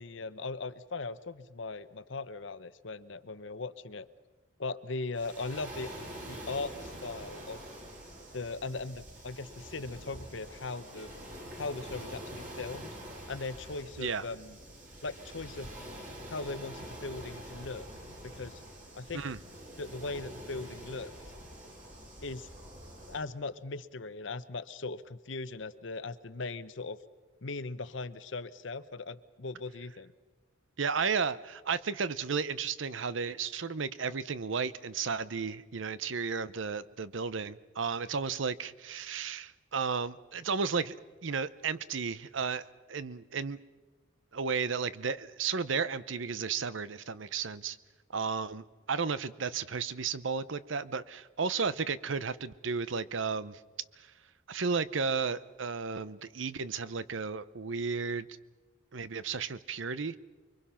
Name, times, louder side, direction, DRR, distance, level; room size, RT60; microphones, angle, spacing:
voice 1, 0.0-4.1 4.6-5.9 6.3-7.6 8.3-11.1 11.6-12.9 13.3-14.6 15.0-15.7 16.3-17.9 18.2-18.6 18.9-19.3 19.8-21.1 22.2-22.5 23.1-27.0 27.4-30.1, left 3 dB, 70° left, 14 dB, 0.9 m, -39 dB
Waves surf, 5.1-23.2, equal, 40° right, 6.1 m, -46 dB
voice 2, 30.8-40.9 41.2-43.6 44.3-47.8 48.1-53.6 54.0-54.1 54.5-58.3 58.9-60.1, right 5 dB, 75° right, 16 dB, 0.8 m, -33 dB
29.0 x 23.0 x 5.8 m, 1.3 s
head